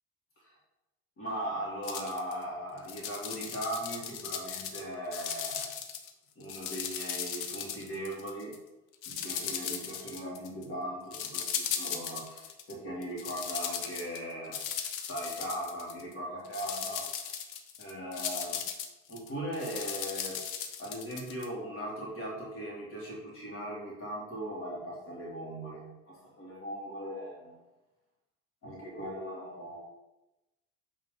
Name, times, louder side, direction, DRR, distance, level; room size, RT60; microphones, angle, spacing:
voice 1, 1.2-5.7 6.4-8.6 9.1-14.6 15.0-17.1 17.8-18.7 19.1-20.4 20.8-27.6 28.6-29.8, equal, 40° left, -4 dB, 2.0 m, -39 dB
sound 1, 1.8-2.3 2.8-4.8 5.1-6.1 6.4-8.6 9.0-10.6 11.1-12.7 13.0-16.1 16.4-21.5, left 8 dB, 70° left, 0.8 m, -37 dB
8.5 x 3.3 x 3.7 m, 0.98 s
cardioid pair, 145°, 33 cm